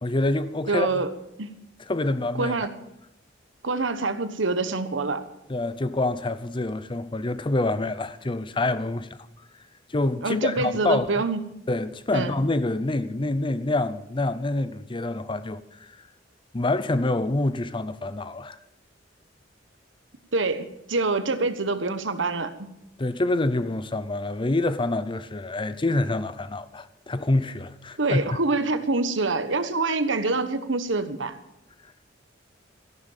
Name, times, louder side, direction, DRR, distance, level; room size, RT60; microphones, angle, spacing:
voice 1, 0.0-1.0 1.9-2.6 5.5-9.1 9.9-11.1 11.7-15.9 16.5-18.6 23.0-28.3, left 2 dB, 25° left, 0.6 m, -26 dB
voice 2, 0.7-1.1 1.4-1.5 2.4-2.7 3.6-5.2 10.2-11.4 12.1-12.3 20.3-22.7 28.0-31.4, right 3 dB, 80° right, 1.3 m, -26 dB
14.0 x 11.5 x 7.4 m
head